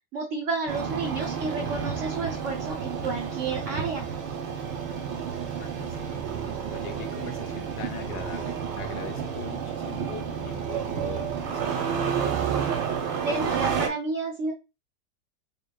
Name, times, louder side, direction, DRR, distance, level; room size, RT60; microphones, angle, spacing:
voice 1, 0.1-4.1 13.2-14.5, right 3 dB, 55° right, -1 dB, 0.9 m, -31 dB
Engine starting, 0.7-13.9, right 7 dB, 85° right, 1.5 m, -30 dB
voice 2, 5.6-6.2 6.7-12.3, left 8 dB, 80° left, 5 dB, 1.3 m, -42 dB
3.6 x 3.3 x 2.3 m, 0.27 s
omnidirectional pair, 2.0 m